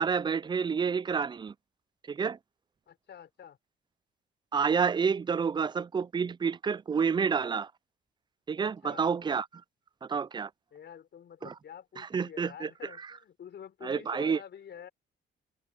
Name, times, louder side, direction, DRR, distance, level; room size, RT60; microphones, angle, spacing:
voice 1, 0.0-1.5 2.1-2.4 4.5-7.7 8.5-9.5 10.0-10.5 11.4-11.5 12.0-13.1 13.8-14.4, right 6 dB, 25° right, 0.4 m, -29 dB
voice 2, 2.9-3.6 8.6-9.1 10.7-14.9, left 8 dB, 60° left, 5.3 m, -48 dB
cardioid pair, 90°, 20 cm